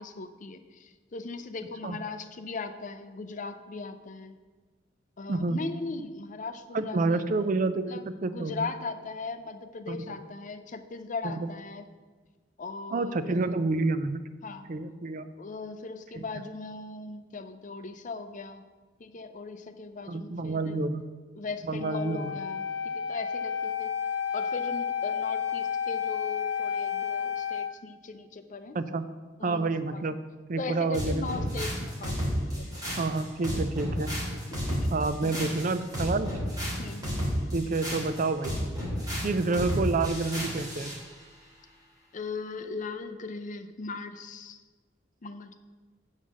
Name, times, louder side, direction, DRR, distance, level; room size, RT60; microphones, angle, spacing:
voice 1, 0.0-4.4 5.2-7.3 7.9-11.9 12.6-13.6 14.4-14.7 15.4-18.6 19.0-20.8 21.4-23.9 24.3-28.8 29.4-30.0 30.6-32.9 34.5-34.9 35.2-35.3 36.8-37.3 42.1-44.6 45.2-45.5, left 4 dB, 40° left, 9 dB, 0.5 m, -39 dB
voice 2, 5.3-5.6 6.7-8.7 9.9-10.2 11.2-11.5 12.9-14.3 14.7-15.3 16.1-16.2 20.1-21.0 21.7-22.3 28.7-29.1 29.4-30.2 30.5-31.6 33.0-34.1 34.9-36.3 37.5-38.6 39.2-40.9, right 3 dB, 45° right, 11 dB, 0.4 m, -29 dB
Wind instrument woodwind instrument, 21.8-27.7, left 7 dB, 80° left, 0.9 m, -31 dB
sound 1, 30.9-41.0, equal, 20° right, 2.9 m, -32 dB
8.2 x 5.6 x 6.2 m, 1.3 s
head